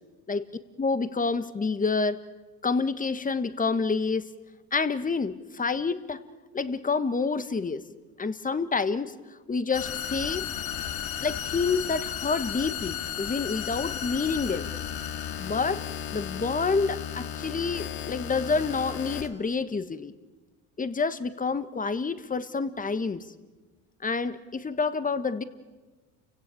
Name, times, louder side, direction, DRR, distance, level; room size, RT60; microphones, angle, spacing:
voice 1, 0.8-2.2 2.6-4.3 4.7-6.2 6.5-7.8 8.2-9.1 9.5-10.4 11.2-14.7 15.4-15.8 16.1-20.1 20.8-23.2 24.0-25.4, left 4 dB, 20° left, 13 dB, 1.4 m, -28 dB
sound 1, 9.7-19.3, left 9 dB, 60° left, 2.2 m, -34 dB
29.0 x 17.0 x 8.6 m, 1.3 s
supercardioid pair, 90°, 40 cm